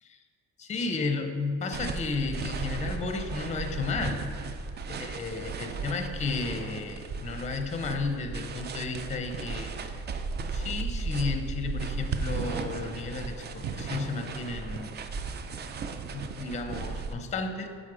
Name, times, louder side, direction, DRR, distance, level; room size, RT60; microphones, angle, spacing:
voice 1, 0.6-4.2 4.9-10.0 10.5-14.9 16.1-17.7, left 4 dB, 25° left, 6 dB, 0.5 m, -33 dB
sound 1, 1.7-17.1, right 4 dB, 35° right, 0.4 m, -35 dB
7.5 x 4.2 x 4.8 m, 2.2 s
cardioid pair, 140°, 30 cm